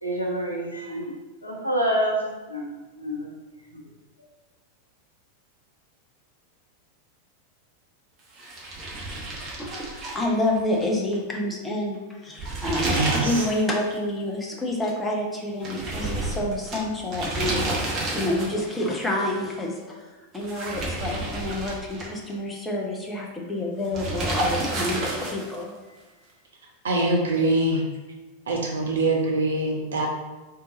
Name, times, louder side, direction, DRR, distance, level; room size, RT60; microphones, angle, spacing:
voice 1, 0.0-1.1 1.4-2.2 2.5-2.7 3.0-3.3 3.7-3.8, right 1 dB, 90° left, -3 dB, 0.9 m, -27 dB
sound 1, 8.4-10.8 11.1-11.2 12.2-13.6 13.9-14.0 15.6-18.7 20.3-22.3 23.9-25.6, right 2 dB, 30° right, 0.9 m, -30 dB
voice 2, 9.6-17.6 18.1-20.0 20.3-25.9, left 1 dB, 10° left, -2 dB, 0.8 m, -28 dB
voice 3, 12.9-13.5 26.8-27.8 28.5-30.1, right 2 dB, 65° right, -1 dB, 0.8 m, -24 dB
3.7 x 2.8 x 3.9 m, 1.2 s
figure-of-eight pair, 90°, 0 cm